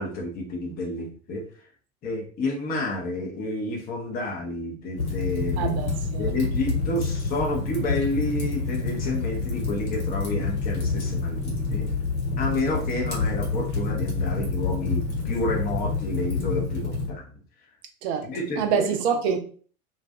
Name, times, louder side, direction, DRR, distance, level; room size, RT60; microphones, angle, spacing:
voice 1, 0.0-1.7 2.0-5.8 6.2-11.9 12.4-17.3 17.6-17.7 18.2-18.9, left 2 dB, 20° left, 0.5 m, -30 dB
Fire, 5.0-17.1, left 4 dB, 70° left, 1.1 m, -28 dB
voice 2, 5.6-6.3 18.0-18.3 18.6-19.4, right 7 dB, 50° right, 0.5 m, -25 dB
2.5 x 2.3 x 2.2 m
figure-of-eight pair, 80°, 43 cm